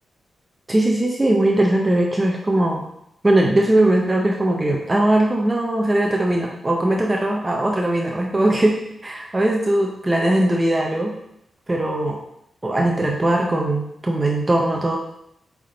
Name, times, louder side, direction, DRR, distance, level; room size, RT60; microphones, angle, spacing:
voice 1, 0.7-2.8 3.2-11.2 11.7-12.2 12.6-15.0, right 1 dB, 20° right, 0 dB, 0.6 m, -20 dB
7.7 x 3.5 x 3.8 m, 0.79 s
wide cardioid pair, 140°, 0 cm